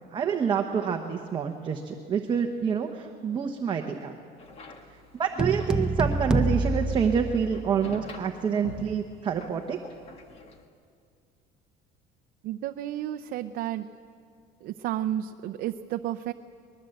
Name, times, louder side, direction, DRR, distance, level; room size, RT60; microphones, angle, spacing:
voice 1, 0.1-4.1 5.1-9.8, right 7 dB, 25° right, 3 dB, 1.0 m, -27 dB
sound 1, 4.4-10.7, left 3 dB, 30° left, 1.6 m, -46 dB
sound 2, 5.4-7.9, right 2 dB, 5° right, 0.6 m, -27 dB
voice 2, 12.4-13.9 14.6-16.3, right 12 dB, 50° right, 7 dB, 0.6 m, -32 dB
23.5 x 20.5 x 7.9 m, 2.3 s
cardioid pair, 175°, 20 cm